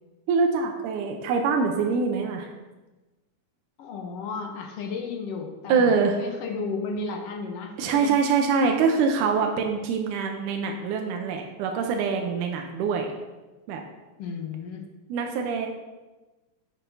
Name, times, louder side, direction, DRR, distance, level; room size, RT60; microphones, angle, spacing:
voice 1, 0.3-2.5 5.7-6.2 7.8-13.1 13.7-13.8 15.1-15.7, right 5 dB, 85° right, 3 dB, 2.3 m, -24 dB
voice 2, 3.8-8.1 14.2-14.9, left 4 dB, 65° left, 3 dB, 1.7 m, -33 dB
10.0 x 8.0 x 2.7 m, 1.2 s
omnidirectional pair, 3.6 m